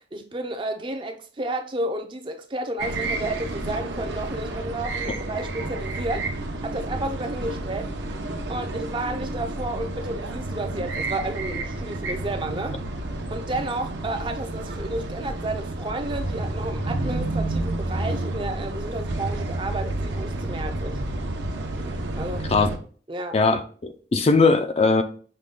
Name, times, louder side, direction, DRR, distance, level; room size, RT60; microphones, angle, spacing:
voice 1, 0.0-6.3 6.6-7.9 8.5-12.8 13.3-21.0 22.2-22.5 23.1-23.4, right 2 dB, 25° right, 0.5 m, -31 dB
sound 1, 2.8-22.8, right 2 dB, 70° right, 0.7 m, -30 dB
voice 2, 23.3-25.0, left 3 dB, 30° left, 0.3 m, -20 dB
6.5 x 2.2 x 3.7 m
head